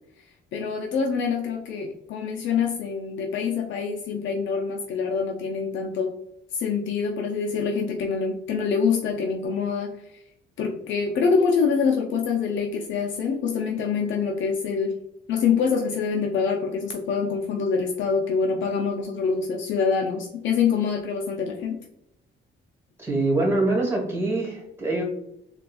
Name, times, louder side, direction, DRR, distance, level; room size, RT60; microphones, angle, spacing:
voice 1, 0.5-6.1 6.5-10.2 10.6-14.9 15.3-21.8, left 5 dB, 70° left, 2 dB, 0.5 m, -25 dB
voice 2, 23.0-25.0, right 2 dB, 10° right, -2 dB, 1.4 m, -24 dB
3.9 x 2.3 x 2.3 m, 0.79 s
cardioid pair, 90°, 20 cm